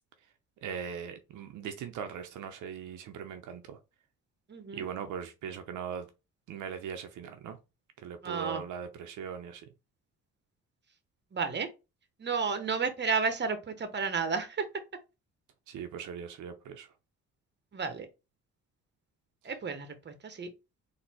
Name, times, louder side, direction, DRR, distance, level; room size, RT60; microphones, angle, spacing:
voice 1, 0.6-3.8 4.7-6.1 6.5-7.6 8.0-9.6 15.7-16.9, right 7 dB, 80° right, 0.8 m, -40 dB
voice 2, 4.5-4.9 8.2-8.6 11.3-11.7 12.2-14.6 17.7-18.0 19.4-20.5, right 5 dB, 35° right, 1.2 m, -32 dB
4.1 x 2.9 x 4.4 m
cardioid pair, 90°, 30 cm